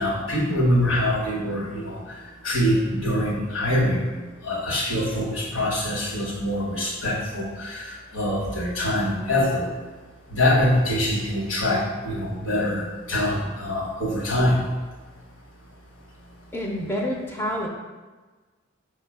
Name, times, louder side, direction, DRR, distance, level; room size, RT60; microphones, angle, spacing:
voice 1, 0.0-2.0 2.4-4.1 4.4-9.7 10.3-14.6, left 1 dB, 70° left, -3 dB, 1.1 m, -24 dB
voice 2, 16.5-17.7, equal, 10° left, -1 dB, 0.4 m, -28 dB
4.8 x 2.2 x 4.7 m, 1.3 s
head